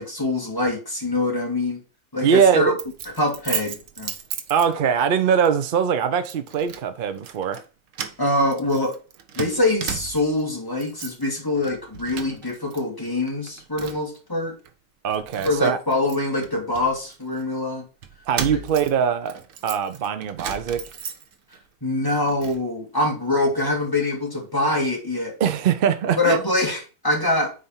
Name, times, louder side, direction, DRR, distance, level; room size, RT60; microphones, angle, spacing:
voice 1, 0.0-1.8 2.1-2.7 3.2-4.1 8.2-8.9 9.4-14.5 15.4-17.9 18.4-18.6 21.8-25.3 26.2-27.5, left 2 dB, 15° left, 1.9 m, -24 dB
voice 2, 2.2-2.8 4.5-7.6 15.0-15.8 18.3-19.4 19.6-20.8 25.4-26.4, right 7 dB, 55° right, 0.7 m, -21 dB
Keys jangling, 2.8-5.1 5.4-5.6 6.2-6.9 7.2-7.6 7.9-10.4 10.7-11.3 11.6-12.8 13.1-14.2 14.6-14.7 15.1-17.4 18.0-21.6 21.9-22.6, right 8 dB, 75° right, 1.1 m, -35 dB
5.1 x 4.1 x 5.5 m
omnidirectional pair, 1.4 m